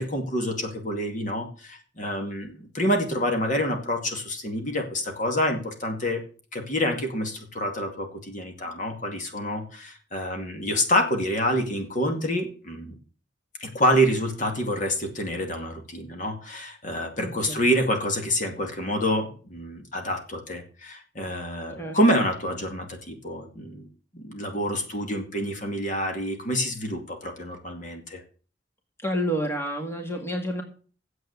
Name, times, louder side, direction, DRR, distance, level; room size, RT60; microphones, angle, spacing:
voice 1, 0.0-6.2 6.5-12.9 13.6-23.9 24.1-28.2, equal, 45° left, 4 dB, 2.3 m, -27 dB
voice 2, 17.2-17.6 21.8-22.0 29.0-30.6, equal, 15° left, 3 dB, 2.0 m, -29 dB
9.7 x 7.8 x 8.1 m, 0.41 s
head